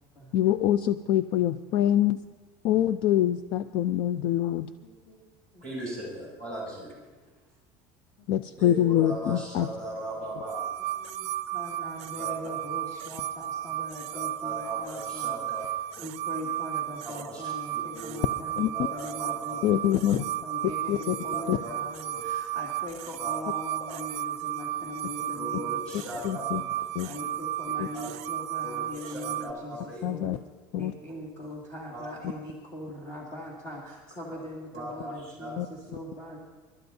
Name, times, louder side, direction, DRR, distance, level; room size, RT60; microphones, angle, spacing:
voice 1, 0.3-2.2 2.6-4.7 8.3-9.7 18.6-18.7 19.6-20.2 20.9-21.2 21.5-21.6 26.2-26.6 26.9-27.1 27.8-27.9 30.0-30.4 30.7-30.9 35.6-35.7, left 12 dB, 50° left, 12 dB, 0.4 m, -25 dB
voice 2, 4.8-5.2 5.5-5.6 8.2-8.3 10.1-10.2 10.9-15.7 16.0-26.7 27.0-30.3 30.7-36.4, left 1 dB, 25° left, -4 dB, 2.2 m, -41 dB
voice 3, 5.6-7.0 8.6-10.7 12.2-12.4 14.1-15.6 15.9-16.0 17.0-18.2 18.7-19.6 21.3-21.7 22.1-22.2 23.2-23.3 23.9-24.0 25.3-26.4 27.9-28.1 28.6-30.2 31.9-32.1 34.7-35.5, right 1 dB, 10° left, -6 dB, 6.1 m, -38 dB
sound 1, 10.5-29.5, right 13 dB, 60° right, 0.4 m, -34 dB
29.0 x 12.5 x 2.7 m, 1.3 s
cardioid pair, 170°, 12 cm